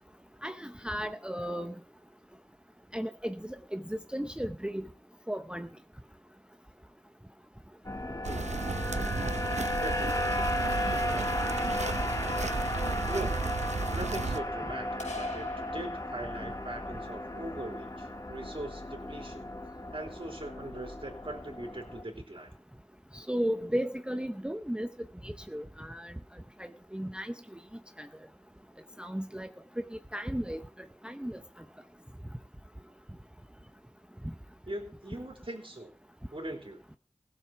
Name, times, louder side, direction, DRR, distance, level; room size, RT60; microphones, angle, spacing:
voice 1, 0.4-1.7 2.9-3.4 3.7-4.9 5.3-5.7 23.1-24.9 25.2-26.1 26.6-27.3 28.0-28.1 29.0-29.5 29.8-30.6 31.0-31.4, equal, 10° right, 9 dB, 0.7 m, -34 dB
sound 1, 7.8-22.0, left 1 dB, 30° left, 1.5 m, -35 dB
sound 2, 8.2-14.4, right 4 dB, 80° right, 0.8 m, -34 dB
voice 2, 9.8-10.3 11.0-11.3 13.0-13.4 13.9-19.5 19.9-22.5 34.7-35.9 36.3-36.8, right 1 dB, 50° right, 2 dB, 3.3 m, -40 dB
sound 3, 15.0-16.7, left 3 dB, 80° left, 3.8 m, -42 dB
16.5 x 7.5 x 5.8 m, 0.39 s
wide cardioid pair, 45°, 12 cm